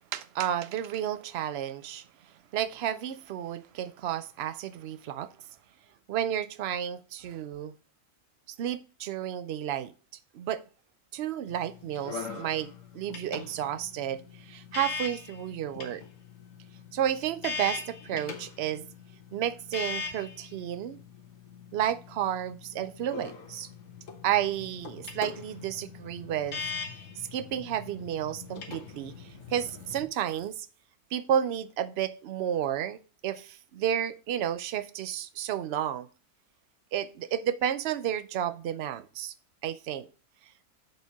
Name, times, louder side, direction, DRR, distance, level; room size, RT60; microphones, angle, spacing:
voice 1, 0.1-2.0 2.5-5.3 6.1-7.7 8.6-9.9 10.3-10.6 11.1-16.0 16.9-18.9 19.3-21.0 21.7-23.7 24.2-26.7 27.3-30.7 31.1-33.0 33.2-36.1 36.9-39.3 39.6-40.1, right 10 dB, 65° right, 0.6 m, -31 dB
sound 1, 11.5-30.0, left 5 dB, 60° left, 1.4 m, -41 dB
6.7 x 4.3 x 4.8 m
omnidirectional pair, 1.5 m